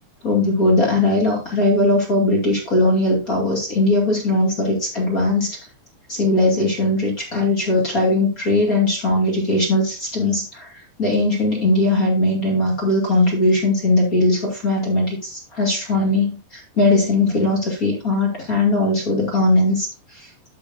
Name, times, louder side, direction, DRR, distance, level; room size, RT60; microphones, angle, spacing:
voice 1, 0.2-5.6 6.1-20.3, left 2 dB, 30° left, -3 dB, 1.8 m, -19 dB
14.5 x 5.2 x 2.7 m, 0.33 s
omnidirectional pair, 5.2 m